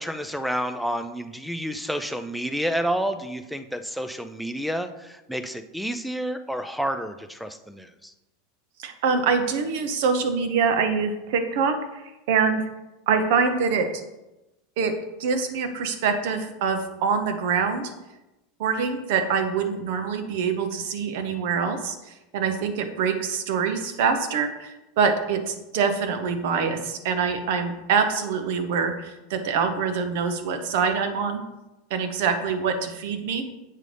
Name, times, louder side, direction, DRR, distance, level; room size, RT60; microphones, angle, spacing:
voice 1, 0.0-8.1, equal, ahead, 8 dB, 0.3 m, -30 dB
voice 2, 8.8-12.6 13.1-13.9 14.8-14.9 15.2-17.9 18.6-31.4 31.9-33.4, right 5 dB, 60° right, 7 dB, 0.8 m, -25 dB
7.5 x 5.3 x 3.3 m, 1.0 s
supercardioid pair, 165°, 0 cm